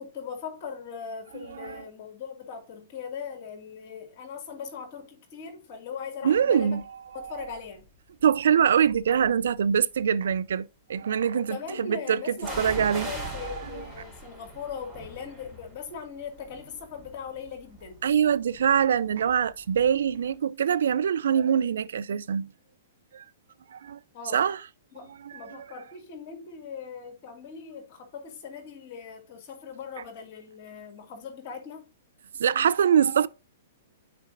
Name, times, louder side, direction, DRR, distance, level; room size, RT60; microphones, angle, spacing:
voice 1, 0.0-6.8 7.1-7.8 11.3-18.0 24.1-24.5 24.9-31.9, left 6 dB, 45° left, 2.3 m, -40 dB
voice 2, 6.2-6.8 7.2-7.3 8.2-13.3 18.0-22.5 23.1-23.2 23.7-24.0 24.3-24.6 25.2-25.3 32.4-33.3, right 8 dB, 65° right, 0.4 m, -24 dB
sound 1, 7.4-7.8 8.5-9.5 12.4-20.0 20.3-20.4, right 1 dB, 5° right, 4.0 m, -42 dB
9.2 x 5.0 x 2.6 m
figure-of-eight pair, 110°, 0 cm